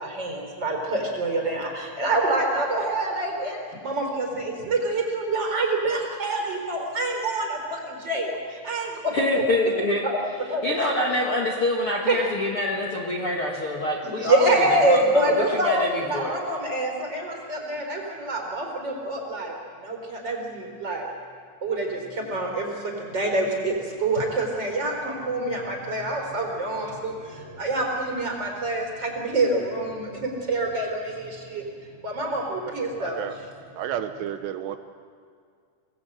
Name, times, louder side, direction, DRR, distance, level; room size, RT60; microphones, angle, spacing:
voice 1, 0.0-9.4 10.0-10.2 10.5-10.9 12.1-12.2 14.0-15.8 16.1-19.6 19.8-21.1 21.6-31.6 32.0-33.2, right 2 dB, 25° right, 1 dB, 4.3 m, -26 dB
voice 2, 9.1-10.0 10.6-14.6 14.9-15.3 15.6-16.3, left 1 dB, 45° left, -1 dB, 1.9 m, -25 dB
voice 3, 33.0-33.3 33.7-34.8, right 10 dB, 80° right, 9 dB, 2.9 m, -31 dB
27.0 x 19.0 x 8.1 m, 2.1 s
omnidirectional pair, 5.1 m